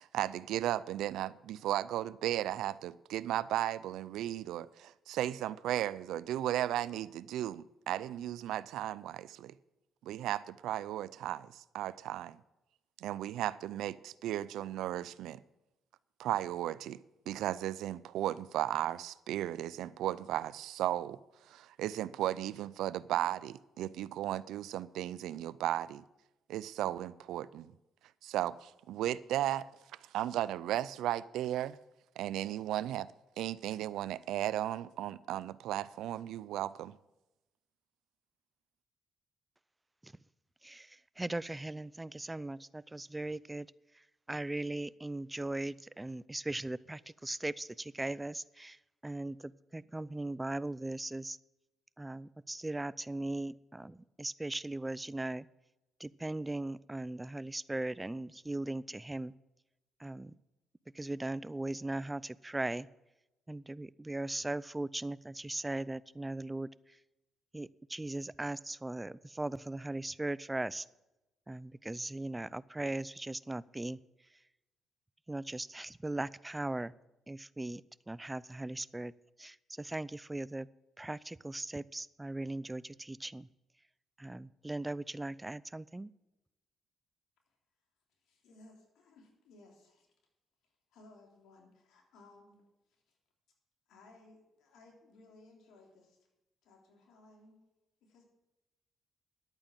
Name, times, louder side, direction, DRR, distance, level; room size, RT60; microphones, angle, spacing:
voice 1, 0.0-9.5 10.0-12.4 13.0-15.4 16.2-17.0 17.3-21.2 21.5-26.0 26.5-27.7 28.2-29.7 30.1-31.8 32.2-33.1 33.4-36.9, right 13 dB, 85° right, 0.4 m, -35 dB
voice 2, 40.6-43.7 44.3-48.8 49.0-51.4 52.0-55.5 56.0-59.3 60.0-60.3 60.9-62.9 63.5-66.7 67.5-70.9 71.5-74.0 75.3-76.9 77.3-77.8 78.1-79.1 79.4-80.7 81.0-83.5 84.2-86.1, right 2 dB, 15° right, 0.4 m, -38 dB
voice 3, 88.2-90.1 90.9-92.6 92.9-93.2 93.9-96.2 96.6-97.6 98.0-98.2, left 2 dB, 85° left, 3.3 m, -60 dB
11.0 x 8.9 x 7.4 m
cardioid pair, 90°, 0 cm